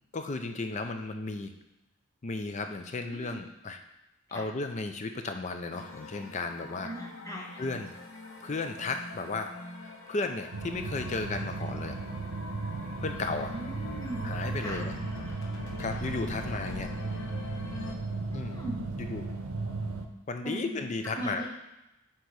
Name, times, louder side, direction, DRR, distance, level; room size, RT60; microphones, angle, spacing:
voice 1, 0.1-1.5 2.2-3.8 4.3-6.9 7.6-7.9 8.4-9.5 9.8-12.0 13.0-13.5 14.2-14.9 15.8-16.9 18.3-18.6 19.0-19.3 20.3-21.4, left 3 dB, 35° left, 6 dB, 0.4 m, -34 dB
voice 2, 3.1-3.4 4.3-4.4 6.8-7.6 13.3-14.2 14.6-14.8 18.3-18.8 20.4-20.9 21.2-21.5, equal, 15° left, -2 dB, 1.0 m, -39 dB
sound 1, 5.7-17.9, left 3 dB, 65° left, 0.9 m, -44 dB
sound 2, 10.5-20.0, right 3 dB, 80° right, 0.7 m, -36 dB
7.8 x 3.0 x 4.7 m, 0.98 s
head